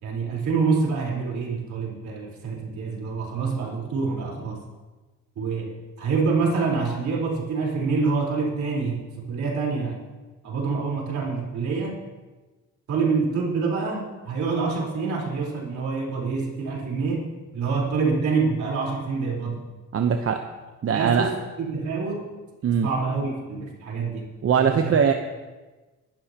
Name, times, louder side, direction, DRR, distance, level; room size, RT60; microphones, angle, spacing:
voice 1, 0.0-4.6 5.4-10.0 10.4-12.0 12.9-19.6 20.9-22.3 22.8-24.3 24.6-25.0, right 4 dB, 70° right, -2 dB, 4.3 m, -26 dB
voice 2, 19.9-20.4 20.8-21.3 22.6-22.9 24.4-25.1, right 7 dB, 50° right, 5 dB, 0.9 m, -21 dB
22.5 x 12.0 x 3.0 m, 1.2 s
cardioid pair, 90°, 30 cm